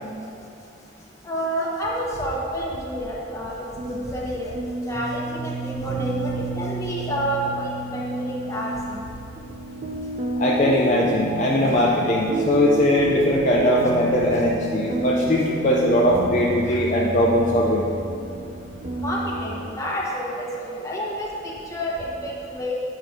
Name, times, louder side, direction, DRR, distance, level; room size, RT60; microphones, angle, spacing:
voice 1, 1.2-4.5 4.8-9.0 16.7-16.9 19.0-22.7, equal, 15° left, -4 dB, 1.2 m, -29 dB
sound 1, 3.8-19.7, right 3 dB, 35° right, 0.5 m, -31 dB
voice 2, 10.4-17.8, left 1 dB, 40° left, -4 dB, 0.6 m, -20 dB
8.7 x 4.7 x 5.1 m, 2.6 s
head